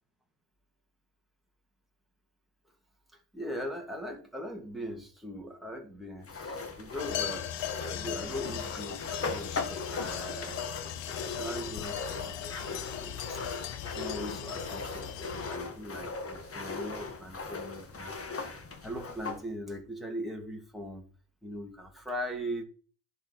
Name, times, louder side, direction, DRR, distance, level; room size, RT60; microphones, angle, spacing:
voice 1, 3.3-13.4 13.8-18.2 18.4-21.0 21.4-22.6, equal, ahead, 1 dB, 2.9 m, -40 dB
sound 1, 6.2-19.4, left 4 dB, 30° left, 2.0 m, -39 dB
sound 2, 7.0-15.6, left 10 dB, 70° left, 1.0 m, -38 dB
10.5 x 4.9 x 7.4 m, 0.41 s
supercardioid pair, 70°, 45 cm